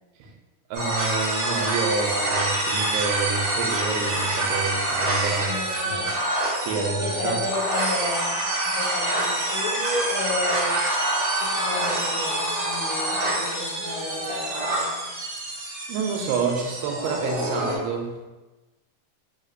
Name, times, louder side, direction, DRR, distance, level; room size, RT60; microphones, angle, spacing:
sound 1, 0.7-17.8, right 1 dB, 60° right, 2.2 m, -26 dB
voice 1, 0.7-5.5 5.8-6.1 6.6-7.4 15.3-15.5 15.9-18.1, right 4 dB, 85° right, 1 dB, 2.5 m, -28 dB
voice 2, 5.3-6.3 6.7-8.4 8.8-10.8 11.4-15.1, left 2 dB, 80° left, -8 dB, 1.8 m, -32 dB
5.8 x 2.8 x 2.5 m, 1.2 s
omnidirectional pair, 4.5 m